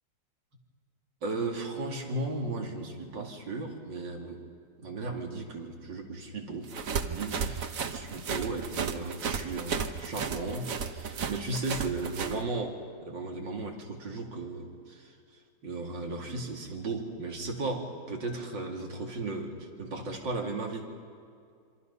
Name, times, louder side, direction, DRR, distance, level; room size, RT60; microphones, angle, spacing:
voice 1, 1.2-4.4 4.8-6.7 7.0-15.1 15.6-20.9, right 3 dB, 90° right, 1 dB, 3.2 m, -35 dB
sound 1, 6.7-12.4, right 6 dB, 55° right, 1.4 m, -34 dB
27.0 x 25.0 x 5.6 m, 2.3 s
omnidirectional pair, 1.9 m